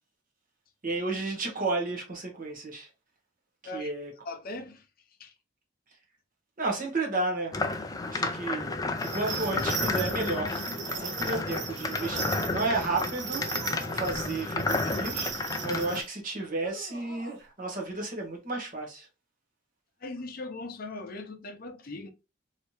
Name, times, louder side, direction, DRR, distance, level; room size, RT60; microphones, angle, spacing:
voice 1, 0.8-2.9 3.7-4.1 6.6-7.8 8.1-10.7 10.9-13.5 13.9-19.1, right 3 dB, 45° right, 1.1 m, -32 dB
voice 2, 4.2-4.9 5.2-5.3 20.0-22.1, left 2 dB, 50° left, 0.7 m, -39 dB
sound 1, 7.5-16.0, left 3 dB, 20° left, 0.3 m, -31 dB
sound 2, 9.0-16.1, right 7 dB, 60° right, 0.6 m, -38 dB
sound 3, 10.8-11.3 11.9-14.3 14.9-16.0 16.6-17.5 17.7-17.9, equal, 85° right, 1.5 m, -48 dB
3.2 x 2.8 x 2.9 m
head